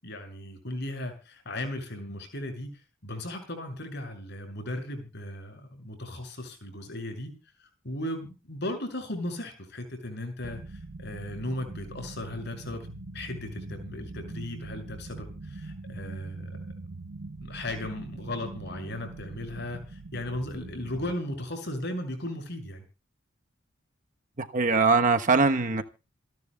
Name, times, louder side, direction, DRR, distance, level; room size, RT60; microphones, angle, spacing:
voice 1, 0.0-7.3 7.8-12.8 13.1-16.7 17.4-22.8, left 1 dB, 60° left, 6.4 m, -36 dB
sound 1, 10.4-21.1, right 2 dB, 85° right, 1.0 m, -42 dB
voice 2, 24.4-25.8, right 4 dB, 40° right, 1.2 m, -22 dB
27.5 x 11.0 x 2.3 m
head